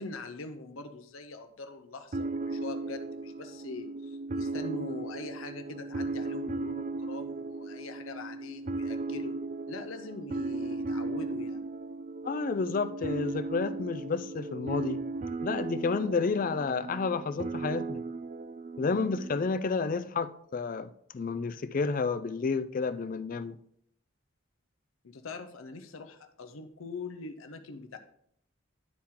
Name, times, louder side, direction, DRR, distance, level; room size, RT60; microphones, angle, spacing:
voice 1, 0.0-9.4 9.7-11.6 25.0-28.0, left 3 dB, 75° left, 0.7 m, -42 dB
sound 1, 2.1-19.6, right 3 dB, 35° right, 0.4 m, -36 dB
voice 2, 12.2-15.0 15.4-18.0 18.8-23.6, left 4 dB, 40° left, 0.4 m, -31 dB
11.0 x 4.4 x 3.7 m
head